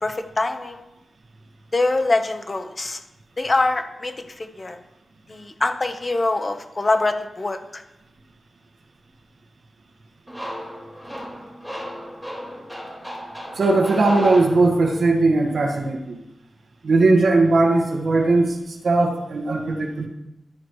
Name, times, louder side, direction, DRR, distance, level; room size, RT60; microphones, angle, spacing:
voice 1, 0.0-0.8 1.7-3.0 3.4-4.8 5.3-7.8, left 2 dB, 30° left, 6 dB, 1.1 m, -24 dB
sound 1, 10.3-15.1, equal, ahead, 4.3 m, -35 dB
voice 2, 13.6-16.2 16.8-20.1, right 3 dB, 70° right, 1 dB, 1.7 m, -19 dB
14.0 x 12.5 x 3.2 m, 0.93 s
wide cardioid pair, 120°, 0 cm